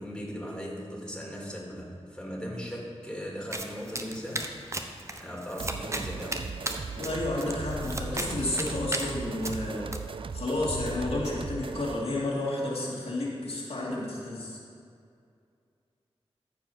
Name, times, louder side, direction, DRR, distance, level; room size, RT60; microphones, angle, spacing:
voice 1, 0.0-4.9 5.2-6.6, equal, 5° left, -3 dB, 2.5 m, -38 dB
Domestic sounds home sounds, 3.5-10.0, right 1 dB, 25° right, 0.8 m, -37 dB
sound 1, 5.6-12.1, right 5 dB, 55° right, 0.4 m, -38 dB
voice 2, 6.9-9.9 10.3-14.6, left 1 dB, 75° left, -6 dB, 2.2 m, -31 dB
sound 2, 7.7-9.1 10.7-12.1, left 4 dB, 60° left, 0.4 m, -42 dB
14.0 x 4.9 x 5.5 m, 2.3 s
wide cardioid pair, 55°, 11 cm